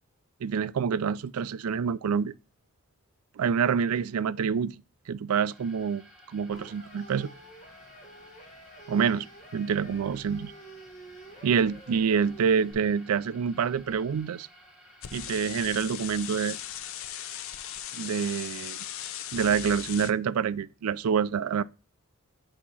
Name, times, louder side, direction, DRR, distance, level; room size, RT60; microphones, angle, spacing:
voice 1, 0.4-2.3 3.4-4.8 5.1-6.0 6.3-7.3 8.9-9.3 9.5-10.5 11.4-14.5 15.1-16.6 17.9-18.8 19.3-21.6, right 6 dB, 75° right, 0.4 m, -27 dB
sound 1, 5.3-19.5, equal, 5° right, 1.4 m, -55 dB
sound 2, 6.5-12.7, right 1 dB, 35° left, 1.3 m, -50 dB
sound 3, 15.0-20.1, left 11 dB, 60° left, 0.5 m, -38 dB
8.5 x 2.9 x 5.5 m
head